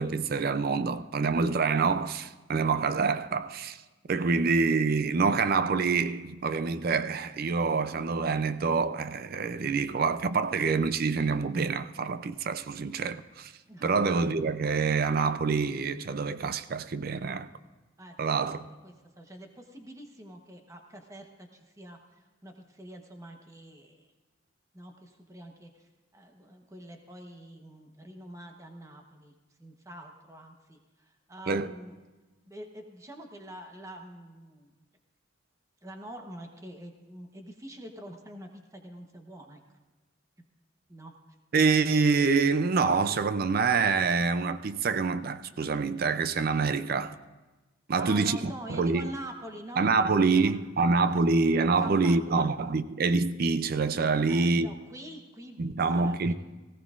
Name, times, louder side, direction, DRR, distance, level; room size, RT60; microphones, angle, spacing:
voice 1, 0.0-3.8 4.1-13.5 13.8-17.5 18.2-18.7 31.5-31.7 41.5-47.1 47.9-49.1 49.8-54.7 55.6-56.3, right 4 dB, 50° right, 0.4 m, -26 dB
voice 2, 18.0-18.6 18.8-24.1 24.7-29.3 29.6-31.9 32.5-34.7 35.8-39.6 40.9-41.1 48.0-50.5 50.8-50.9 51.6-52.5 54.3-56.3, right 1 dB, 15° right, 1.0 m, -45 dB
18.0 x 16.0 x 2.5 m
head